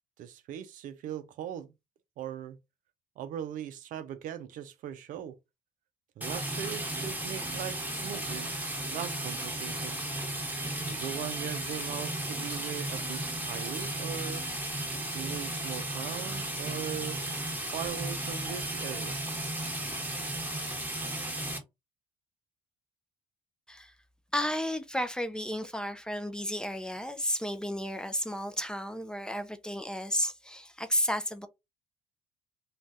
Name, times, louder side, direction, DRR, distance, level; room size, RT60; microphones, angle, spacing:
voice 1, 0.2-1.7 2.2-2.6 3.2-5.4 6.2-8.5 8.9-10.0 10.9-14.4 15.1-17.2 17.7-19.4, right 10 dB, 65° right, 0.5 m, -39 dB
sound 1, 6.2-21.6, right 1 dB, 10° right, 1.2 m, -34 dB
voice 2, 24.3-31.5, equal, 5° left, 0.5 m, -32 dB
2.6 x 2.3 x 3.3 m
hypercardioid pair, 65°, 15 cm